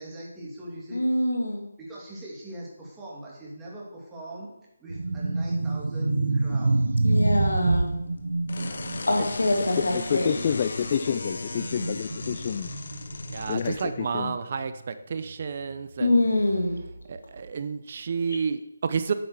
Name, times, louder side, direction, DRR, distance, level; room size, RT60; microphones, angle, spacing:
voice 1, 0.0-1.0 1.8-4.5 4.8-6.7 8.5-8.8, right 1 dB, 10° right, -5 dB, 2.8 m, -41 dB
voice 2, 0.9-1.6 7.0-7.9 9.1-10.3 16.0-16.8 18.3-18.4, left 1 dB, 75° left, 3 dB, 2.1 m, -24 dB
sound 1, 4.9-14.9 15.1-15.4 16.2-17.2, right 2 dB, 70° right, 0.9 m, -28 dB
sound 2, 7.4-13.9, left 3 dB, 55° left, 1.0 m, -38 dB
voice 3, 9.9-12.7 13.5-14.4, left 7 dB, 35° left, 10 dB, 0.4 m, -28 dB
voice 4, 13.3-16.2 17.1-19.1, right 5 dB, 45° right, 11 dB, 0.6 m, -30 dB
9.4 x 8.2 x 4.5 m, 0.89 s
figure-of-eight pair, 155°, 0 cm